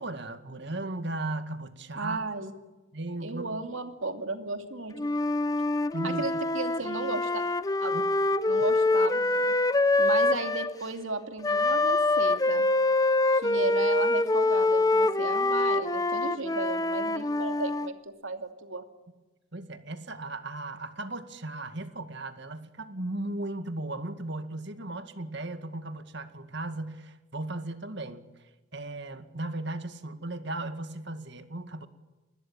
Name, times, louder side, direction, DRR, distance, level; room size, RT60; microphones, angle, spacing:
voice 1, 0.0-2.2 2.9-3.7 5.9-6.3 7.9-8.0 8.6-8.7 19.5-28.2 28.7-31.9, right 2 dB, 55° right, 9 dB, 2.1 m, -36 dB
voice 2, 1.9-2.5 3.2-4.9 6.0-7.4 7.8-8.0 8.5-9.5 10.0-12.7 13.4-18.8, right 3 dB, 75° right, 7 dB, 2.6 m, -35 dB
Wind instrument woodwind instrument, 5.0-10.7 11.4-17.9, left 2 dB, 15° left, 0.8 m, -25 dB
28.5 x 21.5 x 8.9 m, 1.2 s
head